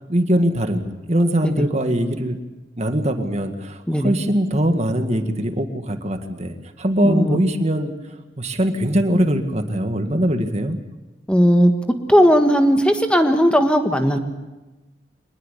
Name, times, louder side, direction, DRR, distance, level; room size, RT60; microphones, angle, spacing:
voice 1, 0.1-2.4 2.8-7.9 8.4-10.8, equal, 40° right, 6 dB, 1.9 m, -21 dB
voice 2, 7.0-7.4 11.3-11.7 12.1-14.2, equal, 5° left, 5 dB, 1.5 m, -16 dB
25.0 x 20.5 x 8.4 m, 1.1 s
head